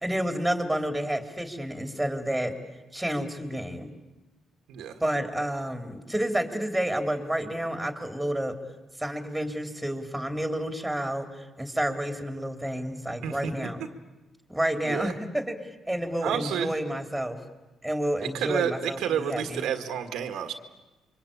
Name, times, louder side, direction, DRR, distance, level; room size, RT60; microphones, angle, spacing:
voice 1, 0.0-2.5 2.9-3.9 5.0-8.6 9.0-13.8 14.5-17.4 17.8-19.7, right 1 dB, 5° right, 6 dB, 3.3 m, -30 dB
voice 2, 4.7-5.0 13.2-13.5 14.8-15.1 16.2-16.8 18.2-20.5, right 8 dB, 85° right, 7 dB, 1.8 m, -30 dB
27.5 x 24.0 x 8.7 m, 1.1 s
cardioid pair, 90°, 0 cm